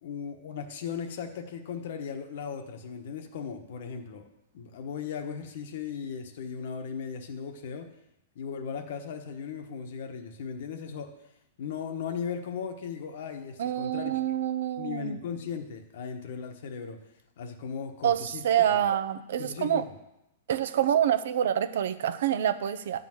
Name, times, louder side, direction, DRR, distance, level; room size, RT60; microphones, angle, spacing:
voice 1, 0.0-4.3 4.5-7.9 8.3-11.1 11.6-14.4 14.8-17.0 17.4-18.4 18.7-18.8 19.4-20.0, left 6 dB, 60° left, 6 dB, 1.2 m, -37 dB
voice 2, 13.6-15.2 18.0-19.8 20.5-23.0, right 10 dB, 70° right, 12 dB, 0.6 m, -27 dB
11.5 x 4.0 x 7.8 m, 0.88 s
supercardioid pair, 160°, 0 cm